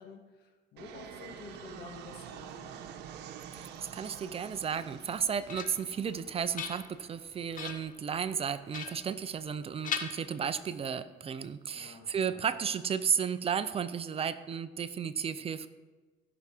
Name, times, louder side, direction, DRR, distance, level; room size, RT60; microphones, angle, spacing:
voice 1, 0.0-2.7 11.7-12.4, left 4 dB, 70° left, 4 dB, 1.9 m, -50 dB
Fixed-wing aircraft airplane, 0.8-9.8, right 8 dB, 85° right, 0.9 m, -49 dB
voice 2, 3.5-15.7, right 7 dB, 35° right, 13 dB, 0.6 m, -33 dB
sound 1, 5.0-6.0 6.4-7.2 7.5-8.0 8.7-9.6 9.8-10.8, left 7 dB, 50° left, 1.0 m, -40 dB
16.0 x 6.2 x 4.5 m, 1.3 s
cardioid pair, 110°, 17 cm